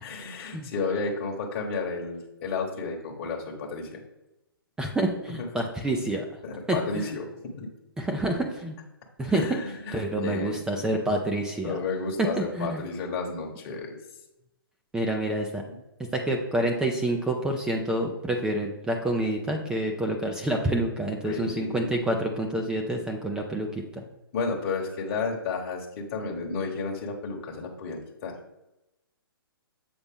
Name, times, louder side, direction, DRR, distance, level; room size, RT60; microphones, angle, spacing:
voice 1, 0.0-4.0 5.5-5.6 6.4-7.7 9.3-10.8 11.6-14.0 15.7-15.8 21.2-22.0 24.3-28.4, left 4 dB, 35° left, -1 dB, 1.1 m, -32 dB
voice 2, 4.8-6.3 6.7-7.1 8.0-8.8 9.2-9.6 9.9-11.8 12.4-12.8 14.9-15.6 16.1-23.7 24.0-24.1, right 1 dB, 5° right, 2 dB, 0.4 m, -28 dB
7.1 x 3.9 x 3.6 m, 0.92 s
hypercardioid pair, 135°, 13 cm